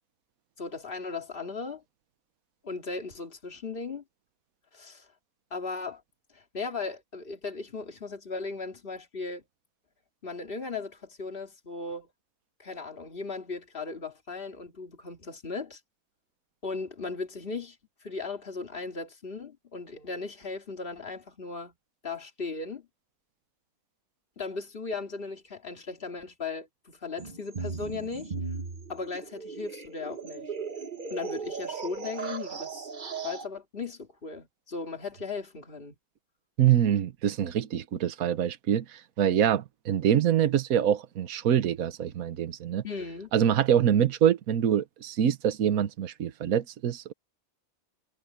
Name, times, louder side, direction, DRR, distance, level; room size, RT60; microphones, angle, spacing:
voice 1, 0.6-1.8 2.6-4.0 4.7-5.1 5.5-6.0 6.3-9.4 10.2-12.1 12.6-15.8 16.6-17.8 18.0-21.7 22.0-22.9 24.4-28.3 28.9-30.4 31.1-32.8 33.2-35.9 42.8-43.3, left 4 dB, 40° left, 2.7 m, -37 dB
sound 1, 27.2-33.5, right 5 dB, 35° right, 1.2 m, -37 dB
voice 2, 36.6-42.8 43.3-47.1, right 9 dB, 75° right, 1.4 m, -25 dB
omnidirectional pair, 1.5 m